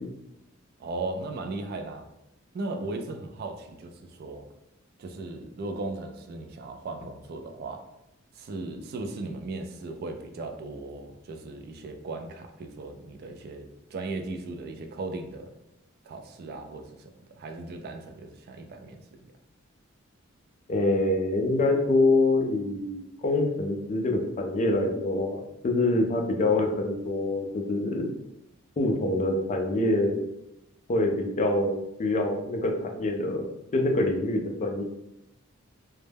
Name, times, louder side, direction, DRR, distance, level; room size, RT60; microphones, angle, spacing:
voice 1, 0.8-2.1 2.5-4.5 5.0-7.8 8.3-15.6 16.0-17.1 17.4-19.3, right 2 dB, 50° right, 6 dB, 0.3 m, -37 dB
voice 2, 20.7-28.1 28.8-30.2 30.9-34.8, left 2 dB, 35° left, 3 dB, 0.4 m, -25 dB
2.1 x 2.0 x 3.2 m, 0.85 s
head